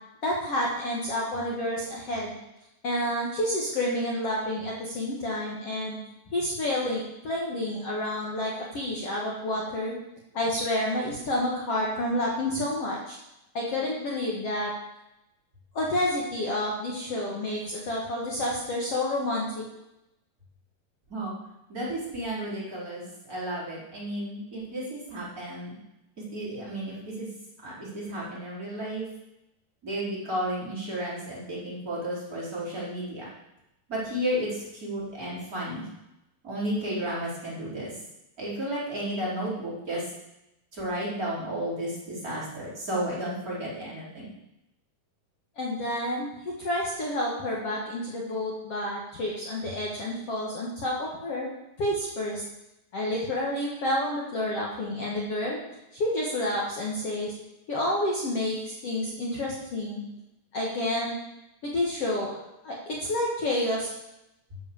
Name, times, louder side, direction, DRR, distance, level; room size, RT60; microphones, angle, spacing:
voice 1, 0.2-2.3 2.8-6.0 6.3-10.0 10.3-13.2 13.5-14.7 15.7-19.6 45.6-46.3 46.6-51.5 51.8-52.4 52.9-55.6 55.9-57.3 57.7-60.0 60.5-61.2 61.6-62.3 62.6-63.9, left 1 dB, 50° left, -3 dB, 2.5 m, -29 dB
voice 2, 21.7-25.7 26.3-27.3 27.6-29.1 29.8-33.3 33.9-35.9 36.4-37.9 38.4-40.0 40.7-44.3, right 1 dB, 25° right, -8 dB, 5.2 m, -33 dB
12.5 x 7.4 x 7.2 m, 0.89 s
omnidirectional pair, 4.0 m